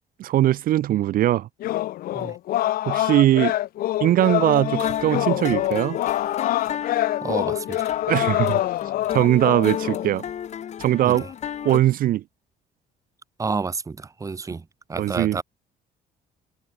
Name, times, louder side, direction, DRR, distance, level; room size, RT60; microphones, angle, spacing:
voice 1, 0.2-1.5 2.8-3.5 4.0-6.0 8.1-8.6 9.1-10.2 10.8-11.2 11.6-12.2 15.0-15.4, right 13 dB, 60° right, 0.5 m, -20 dB
sound 1, 1.6-10.1, left 14 dB, 60° left, 0.5 m, -25 dB
sound 2, 4.5-11.8, left 9 dB, 40° left, 0.8 m, -33 dB
voice 2, 7.2-7.9 11.0-11.3 13.4-15.4, right 4 dB, 20° right, 0.9 m, -30 dB
cardioid pair, 110°, 17 cm